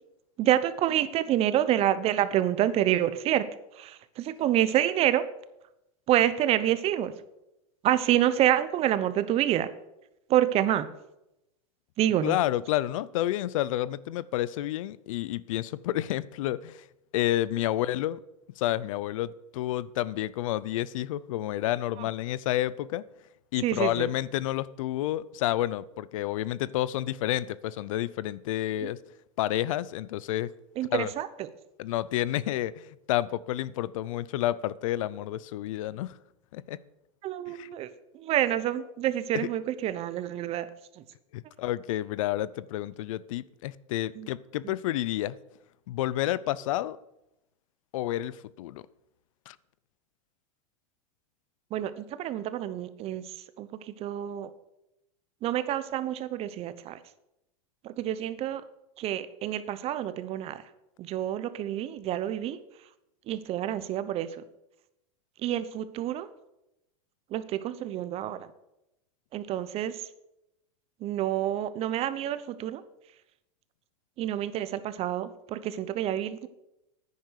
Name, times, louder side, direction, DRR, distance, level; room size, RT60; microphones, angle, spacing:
voice 1, 0.4-3.4 3.8-5.2 6.1-7.1 7.8-9.7 10.3-10.9 12.0-12.4 23.6-24.1 30.8-31.3 37.2-37.9 38.2-40.7 44.2-44.3 51.7-53.2 53.6-53.7 54.0-54.5 55.4-57.0 57.8-58.6 59.0-60.6 61.0-62.6 63.3-64.3 65.4-66.3 67.3-68.4 69.3-69.9 71.0-72.8 74.2-76.5, right 12 dB, 35° right, 13 dB, 0.9 m, -27 dB
voice 2, 12.2-16.8 17.1-18.2 18.6-23.0 23.5-29.0 29.4-30.5 30.8-31.1 31.8-36.1 36.5-36.8 37.5-37.7 39.3-39.5 41.3-45.4 45.9-47.0 47.9-48.8 49.5-49.6, left 14 dB, 70° left, 20 dB, 0.6 m, -30 dB
10.5 x 9.5 x 6.5 m, 0.87 s
supercardioid pair, 130°, 17 cm